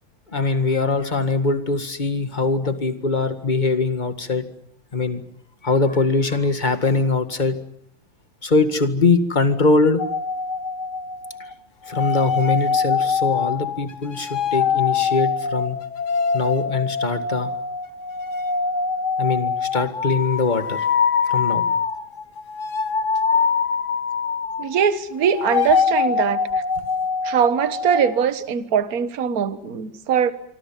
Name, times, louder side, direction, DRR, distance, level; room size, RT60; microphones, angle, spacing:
voice 1, 0.3-4.5 4.9-5.2 5.6-7.6 8.4-10.0 11.9-15.8 16.3-17.5 19.2-20.8 21.3-21.7, left 3 dB, 25° left, 1.9 m, -22 dB
sound 1, 10.0-11.5 11.9-24.9 25.2-28.2, left 5 dB, 45° left, 1.5 m, -24 dB
voice 2, 24.6-26.4 27.2-30.3, right 7 dB, 50° right, 1.7 m, -21 dB
26.5 x 24.5 x 7.5 m
omnidirectional pair, 2.1 m